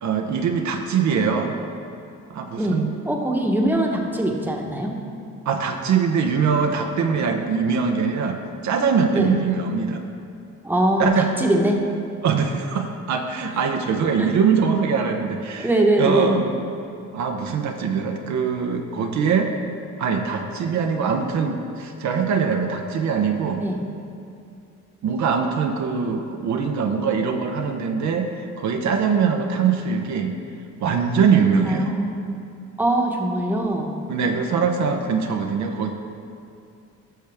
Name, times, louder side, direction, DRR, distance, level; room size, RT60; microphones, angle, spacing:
voice 1, 0.0-1.6 2.3-2.9 5.4-10.0 11.0-11.3 12.2-15.7 16.0-16.5 17.1-19.5 20.0-23.6 25.0-30.3 30.8-32.0 34.1-35.9, right 6 dB, 70° right, 4 dB, 0.8 m, -22 dB
voice 2, 3.1-5.0 7.2-7.3 9.1-9.3 10.6-11.8 14.2-14.3 15.6-16.3 23.6-23.8 31.6-32.2 32.8-33.9, right 1 dB, 5° right, 0 dB, 1.1 m, -22 dB
12.0 x 6.6 x 3.5 m, 2.5 s
cardioid pair, 90°, 30 cm